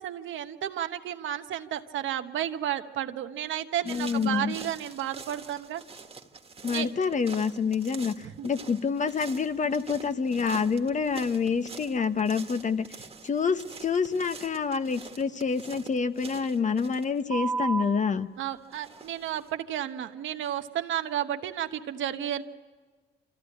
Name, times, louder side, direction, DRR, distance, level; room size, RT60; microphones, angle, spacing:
voice 1, 0.0-5.8 6.7-6.9 8.2-8.5 18.4-22.4, right 11 dB, 75° right, 8 dB, 1.1 m, -32 dB
voice 2, 3.8-4.6 6.6-12.9 13.2-18.3, left 5 dB, 40° left, 11 dB, 0.9 m, -27 dB
sound 1, 3.8-18.1 18.7-19.5, right 4 dB, 30° right, 1.7 m, -41 dB
26.0 x 15.0 x 9.8 m, 1.4 s
cardioid pair, 90°, 20 cm